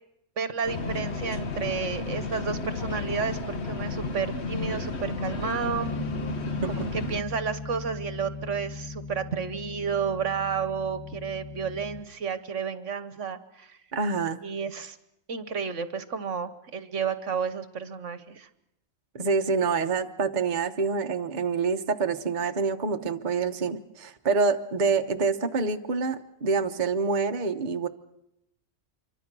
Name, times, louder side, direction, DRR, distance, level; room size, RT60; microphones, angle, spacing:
voice 1, 0.4-5.9 6.6-13.8 14.4-15.0 15.3-18.5, right 6 dB, 65° right, 12 dB, 1.4 m, -31 dB
sound 1, 0.7-7.2, left 3 dB, 55° left, 1.5 m, -32 dB
Bass guitar, 5.8-12.0, left 3 dB, 25° left, 1.2 m, -38 dB
voice 2, 13.9-14.4 19.1-27.9, right 4 dB, 35° right, 6 dB, 1.1 m, -26 dB
26.5 x 24.0 x 6.1 m, 0.84 s
omnidirectional pair, 1.4 m